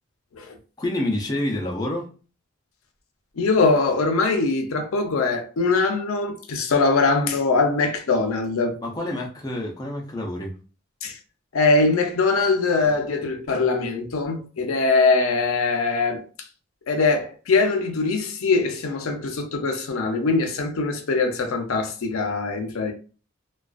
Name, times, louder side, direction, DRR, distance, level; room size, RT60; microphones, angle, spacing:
voice 1, 0.8-2.1 8.8-10.5, left 1 dB, 20° left, 0.5 m, -27 dB
voice 2, 3.4-8.8 11.0-11.2 11.5-16.2 16.9-22.9, left 3 dB, 90° left, 0.5 m, -22 dB
2.4 x 2.2 x 2.3 m
head